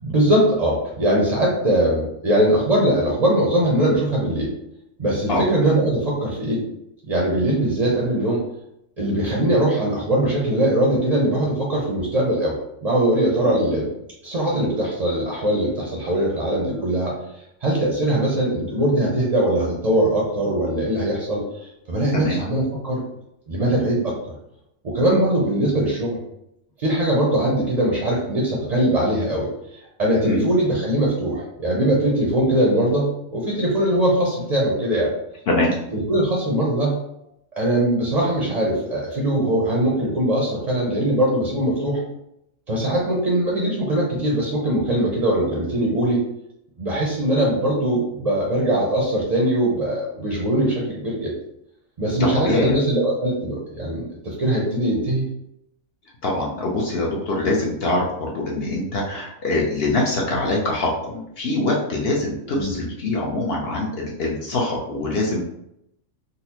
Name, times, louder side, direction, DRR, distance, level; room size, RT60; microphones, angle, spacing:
voice 1, 0.0-4.5 5.0-6.6 7.1-8.4 9.0-12.6 12.8-13.9 14.2-17.2 17.6-23.0 23.5-24.2 24.8-26.2 26.8-35.1 35.9-36.9 37.5-42.0 42.7-46.2 46.8-51.3 52.0-55.2 62.6-62.7, right 1 dB, 45° right, -3 dB, 0.5 m, -21 dB
voice 2, 35.5-35.8 52.1-52.8 56.2-65.4, left 2 dB, 60° left, -2 dB, 0.7 m, -23 dB
3.9 x 2.1 x 2.8 m, 0.80 s
omnidirectional pair, 1.4 m